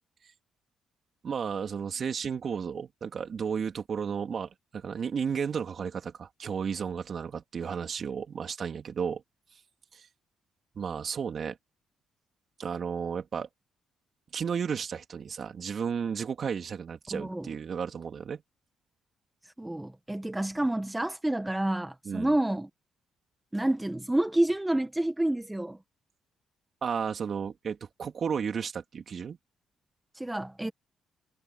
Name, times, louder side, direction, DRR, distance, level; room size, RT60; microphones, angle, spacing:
voice 1, 1.2-9.2 9.9-10.1 10.7-11.6 12.6-13.5 14.3-18.4 22.0-22.4 26.8-29.4, right 6 dB, 50° right, 3.3 m, -33 dB
voice 2, 17.1-17.5 19.4-22.7 23.5-25.8 30.1-30.7, right 1 dB, 10° right, 1.2 m, -29 dB
cardioid pair, 90°, 0 cm